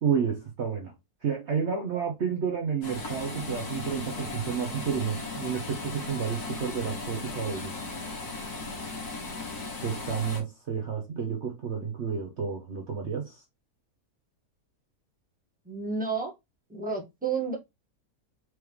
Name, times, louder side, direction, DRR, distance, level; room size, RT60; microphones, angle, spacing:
voice 1, 0.0-0.9 1.2-7.7 9.8-13.4, right 7 dB, 50° right, 1.0 m, -30 dB
sound 1, 2.8-10.4, left 3 dB, 85° left, 2.1 m, -37 dB
voice 2, 15.7-16.3 16.7-17.6, right 5 dB, 5° right, 1.4 m, -31 dB
4.7 x 3.4 x 3.1 m
omnidirectional pair, 1.6 m